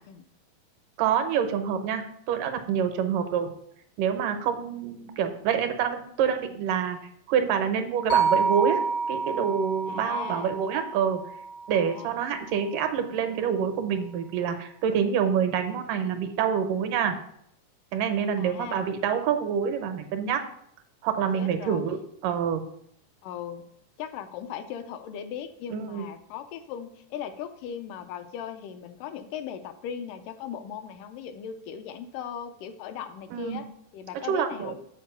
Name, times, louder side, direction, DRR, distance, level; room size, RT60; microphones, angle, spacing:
voice 1, 1.0-3.5 4.0-7.0 7.3-11.2 11.7-17.2 17.9-20.4 21.0-22.6 25.7-26.1 33.3-33.6 34.3-34.8, right 7 dB, 80° right, 7 dB, 2.4 m, -27 dB
sound 1, 8.1-12.3, right 5 dB, 60° left, 0.6 m, -29 dB
voice 2, 9.9-10.7 11.7-12.2 18.4-18.9 21.3-21.8 23.2-23.6 24.0-33.7 33.9-34.8, left 8 dB, 80° left, 8 dB, 2.2 m, -38 dB
7.7 x 4.4 x 6.7 m, 0.72 s
omnidirectional pair, 3.8 m